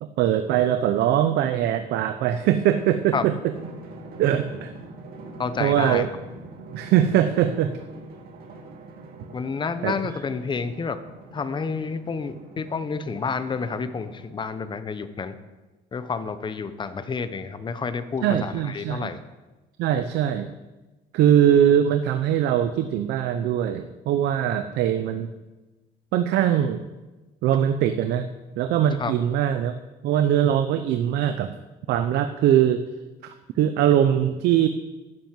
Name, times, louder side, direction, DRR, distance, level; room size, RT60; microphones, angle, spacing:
voice 1, 0.0-3.3 4.2-4.7 5.6-6.1 6.7-7.7 9.8-9.9 18.2-19.1 19.8-20.5 21.1-25.3 26.1-26.8 27.4-28.3 28.6-29.8 30.0-31.5 31.9-32.8 33.2-34.7, right 10 dB, 80° right, 9 dB, 0.7 m, -21 dB
Drum, 3.6-14.6, right 2 dB, 65° right, 2.6 m, -44 dB
voice 2, 5.4-6.0 9.3-11.0 11.3-15.3 15.9-19.2 29.0-29.1, left 5 dB, 30° left, 11 dB, 0.9 m, -29 dB
11.0 x 7.6 x 7.5 m, 1.1 s
cardioid pair, 110°, 17 cm